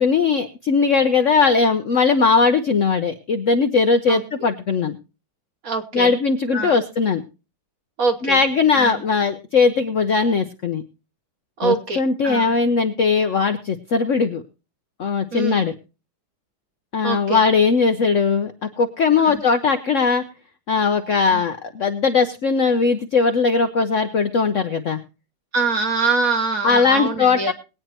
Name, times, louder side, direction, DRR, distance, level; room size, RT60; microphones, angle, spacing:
voice 1, 0.0-5.0 5.9-7.2 8.2-10.8 11.6-14.4 15.0-15.7 16.9-20.2 20.7-25.0 26.6-27.5, left 4 dB, 90° left, 7 dB, 0.6 m, -19 dB
voice 2, 5.6-6.1 6.5-6.8 8.0-8.4 8.8-9.0 11.6-12.5 15.3-15.6 17.0-17.4 19.2-19.4 21.3-21.4 25.5-27.5, right 4 dB, 50° right, 5 dB, 1.3 m, -24 dB
21.5 x 8.9 x 2.9 m, 0.30 s
omnidirectional pair, 2.3 m